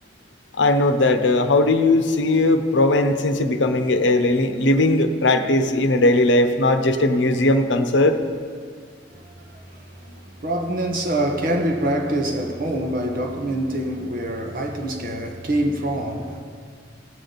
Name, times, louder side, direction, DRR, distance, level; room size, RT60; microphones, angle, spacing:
voice 1, 0.6-8.2, left 2 dB, 85° left, 0.8 m, -18 dB
voice 2, 10.4-16.4, right 1 dB, 50° right, 1.3 m, -25 dB
18.0 x 8.4 x 4.0 m
head